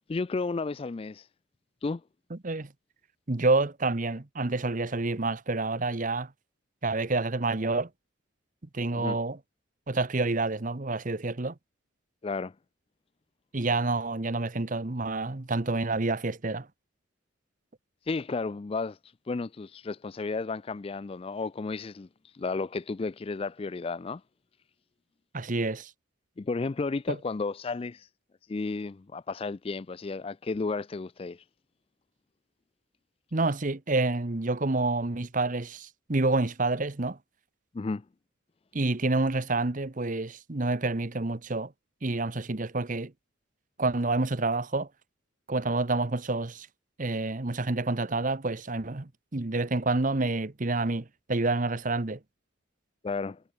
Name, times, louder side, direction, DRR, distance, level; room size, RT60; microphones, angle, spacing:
voice 1, 0.1-1.3 1.8-2.0 8.9-9.2 12.2-12.5 18.1-19.0 19.3-22.1 22.3-24.2 26.4-28.1 28.5-31.4 37.7-38.0 53.0-53.4, left 3 dB, 25° left, 0.3 m, -32 dB
voice 2, 2.3-2.7 3.3-6.3 6.8-7.9 8.7-9.4 9.9-11.5 13.5-16.7 25.3-25.9 27.1-27.2 33.3-37.2 38.7-41.7 42.0-43.1 43.8-44.9 45.5-46.7 47.0-52.2, right 3 dB, 40° right, 0.9 m, -28 dB
head